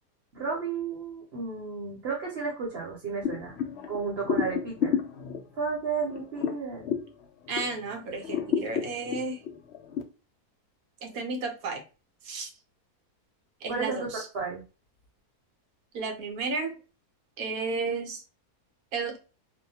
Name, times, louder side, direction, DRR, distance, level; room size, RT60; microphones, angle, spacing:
voice 1, 0.3-3.5 3.9-5.0 5.6-6.8 13.7-14.1 14.3-14.6, right 5 dB, 50° right, 0.9 m, -32 dB
sound 1, 3.2-7.8 8.2-10.0, left 7 dB, 85° left, 0.5 m, -31 dB
voice 2, 7.5-9.4 11.0-11.8 12.2-12.5 13.6-14.3 15.9-16.8 17.4-18.2 18.9-19.2, right 3 dB, 70° right, 1.0 m, -32 dB
2.7 x 2.1 x 2.7 m
omnidirectional pair, 1.7 m